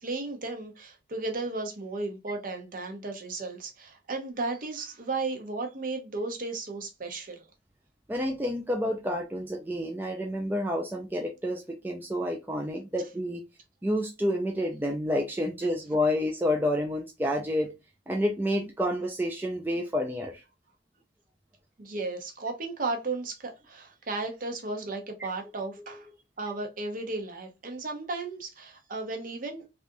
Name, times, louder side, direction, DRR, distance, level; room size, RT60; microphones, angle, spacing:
voice 1, 0.0-7.5 21.8-26.1 26.4-29.7, right 3 dB, 45° right, 0.8 m, -34 dB
voice 2, 8.1-13.4 13.8-17.7 18.1-20.4 25.8-26.0, left 1 dB, 10° right, 0.4 m, -29 dB
3.3 x 2.5 x 2.6 m
head